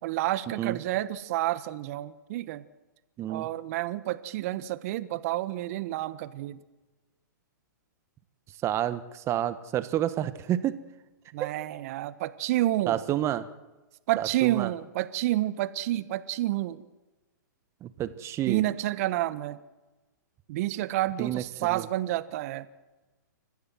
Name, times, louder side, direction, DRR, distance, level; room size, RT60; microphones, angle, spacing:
voice 1, 0.0-2.6 3.3-6.6 11.3-13.0 14.1-16.8 18.5-19.6 20.5-22.7, right 15 dB, 50° right, 15 dB, 1.3 m, -29 dB
voice 2, 8.6-10.8 11.4-11.5 12.9-13.5 14.2-14.7 17.8-18.6 21.2-21.4 21.7-21.8, right 12 dB, 25° right, 13 dB, 1.4 m, -29 dB
29.5 x 15.0 x 7.6 m, 1.1 s
hypercardioid pair, 120°, 10 cm